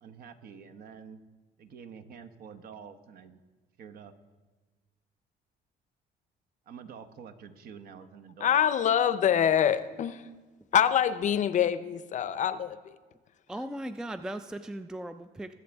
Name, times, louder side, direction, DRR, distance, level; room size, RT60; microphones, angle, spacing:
voice 1, 0.0-1.2 1.6-3.4 3.8-4.1 6.7-8.6, right 6 dB, 60° right, 9 dB, 0.9 m, -47 dB
voice 2, 8.4-10.2 10.7-12.8, left 9 dB, 45° left, 13 dB, 0.6 m, -25 dB
voice 3, 13.5-15.5, right 1 dB, 5° right, 10 dB, 0.3 m, -38 dB
21.5 x 7.8 x 3.5 m, 1.3 s
cardioid pair, 110°, 17 cm